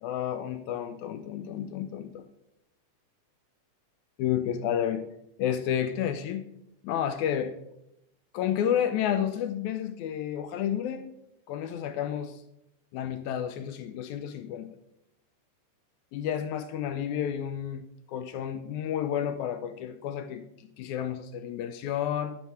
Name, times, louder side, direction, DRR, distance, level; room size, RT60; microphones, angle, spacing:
voice 1, 0.0-2.3 4.2-5.0 5.4-6.4 6.8-7.6 8.3-11.1 11.5-12.4 12.9-14.7 16.1-17.8 18.1-22.4, left 9 dB, 80° left, 10 dB, 1.8 m, -31 dB
10.0 x 4.2 x 5.6 m, 0.82 s
omnidirectional pair, 3.6 m